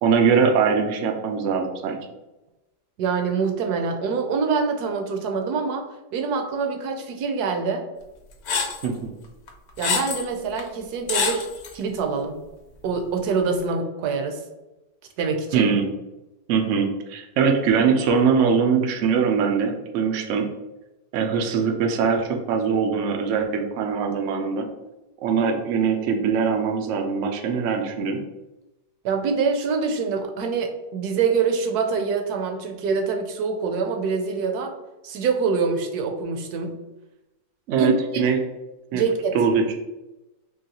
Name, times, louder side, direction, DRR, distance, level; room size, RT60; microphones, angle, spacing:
voice 1, 0.0-2.0 8.8-9.1 15.5-15.9 16.5-20.5 21.1-24.7 25.2-28.2 37.7-38.4 38.9-39.0 39.3-39.8, right 6 dB, 85° right, 3 dB, 0.6 m, -22 dB
voice 2, 3.0-5.8 6.1-7.8 9.8-11.5 11.7-12.4 12.8-14.4 15.2-15.7 29.0-34.7 35.0-36.8 37.8-38.3 38.9-39.3, right 5 dB, 70° right, 4 dB, 1.0 m, -25 dB
sound 1, 8.5-8.9 9.5-10.2 10.6-10.7 11.1-11.7, left 5 dB, 65° left, 1.1 m, -25 dB
3.8 x 3.0 x 2.8 m, 1.0 s
omnidirectional pair, 1.9 m